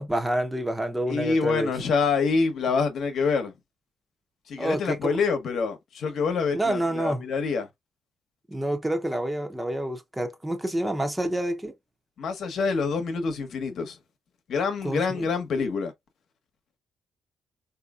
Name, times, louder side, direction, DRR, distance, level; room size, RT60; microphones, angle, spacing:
voice 1, 0.0-1.7 4.6-5.1 6.5-7.2 8.5-11.7 14.8-15.3, right 1 dB, 10° right, 0.9 m, -28 dB
voice 2, 1.1-3.5 4.5-7.7 12.2-14.0 14.5-15.9, left 5 dB, 65° left, 1.0 m, -26 dB
3.9 x 2.7 x 2.4 m
cardioid pair, 90°, 0 cm